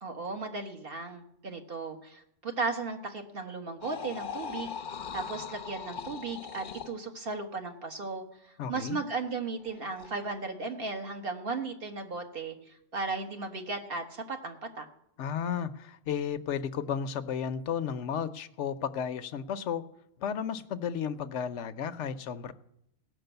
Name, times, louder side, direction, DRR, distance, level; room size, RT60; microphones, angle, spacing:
voice 1, 0.0-4.7 5.1-14.8, right 3 dB, 50° right, 1.5 m, -36 dB
sound 1, 3.8-7.0 9.6-10.3, left 7 dB, 50° left, 0.7 m, -40 dB
voice 2, 8.6-9.0 15.2-19.8 20.2-22.5, left 7 dB, 75° left, 1.0 m, -33 dB
17.0 x 6.2 x 7.9 m
omnidirectional pair, 1.2 m